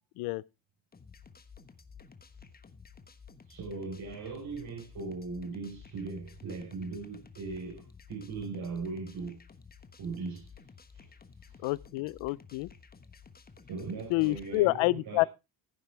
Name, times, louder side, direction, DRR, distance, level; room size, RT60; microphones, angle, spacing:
sound 1, 0.9-14.6, left 5 dB, 20° left, 1.3 m, -54 dB
voice 1, 3.5-9.4 10.0-10.5 10.9-11.1 11.4-11.6 13.7-15.3, right 4 dB, 50° right, 4.7 m, -39 dB
voice 2, 11.6-12.7 14.1-15.2, left 21 dB, 85° left, 0.7 m, -28 dB
16.0 x 9.6 x 3.3 m
cardioid pair, 115°, 46 cm